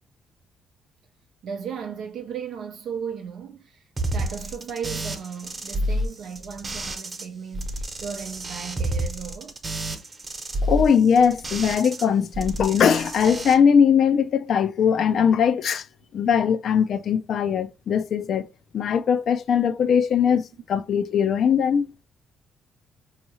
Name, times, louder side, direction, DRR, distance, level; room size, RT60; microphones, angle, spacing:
voice 1, 1.4-9.6, right 7 dB, 75° right, 0.5 m, -36 dB
sound 1, 4.0-7.2 7.5-12.0 12.3-13.5, right 1 dB, 35° right, 0.9 m, -30 dB
voice 2, 10.6-15.8 16.1-18.5 18.7-21.9, left 7 dB, 65° left, 0.4 m, -20 dB
4.6 x 2.8 x 2.8 m
cardioid pair, 90°, 0 cm